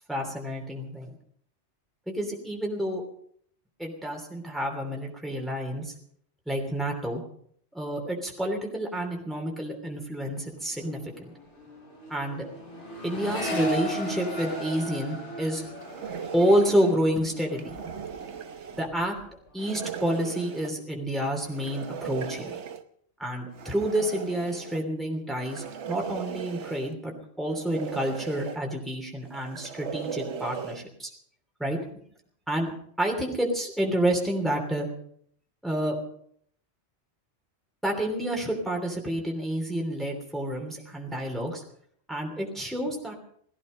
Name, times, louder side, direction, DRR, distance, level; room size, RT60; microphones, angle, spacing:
voice 1, 0.1-1.1 2.1-3.0 3.8-5.9 6.5-7.2 7.7-11.3 12.1-12.5 13.0-15.6 16.0-17.8 18.8-19.1 19.5-22.5 23.2-31.1 31.6-31.8 32.5-34.9 35.6-36.0 37.8-41.6 42.1-43.1, equal, ahead, 1 dB, 3.0 m, -29 dB
Accelerating revving vroom, 10.3-10.6 10.8-18.3 18.7-19.3, equal, 75° left, 5.5 m, -36 dB
sound 1, 14.3-15.0 15.8-17.0 17.5-18.9 19.6-20.7 21.4-22.8 23.5-24.8 25.4-26.9 27.5-28.6 29.3-30.8, right 7 dB, 75° right, 1.2 m, -38 dB
18.0 x 14.5 x 5.3 m, 0.65 s
omnidirectional pair, 1.2 m